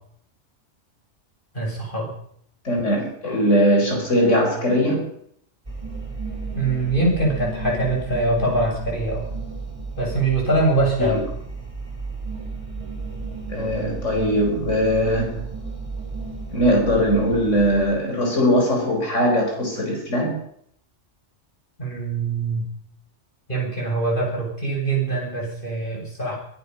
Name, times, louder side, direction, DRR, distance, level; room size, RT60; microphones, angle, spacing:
voice 1, 1.5-2.1 6.5-9.3 10.0-11.2 21.8-22.6 23.5-26.4, right 2 dB, 45° left, -2 dB, 7.7 m, -23 dB
voice 2, 2.6-5.1 11.0-11.2 13.5-15.5 16.5-20.4, equal, 85° left, 0 dB, 4.9 m, -20 dB
sound 1, 5.7-17.9, right 4 dB, 25° right, 3.1 m, -33 dB
23.5 x 11.0 x 5.5 m, 0.66 s
omnidirectional pair, 1.2 m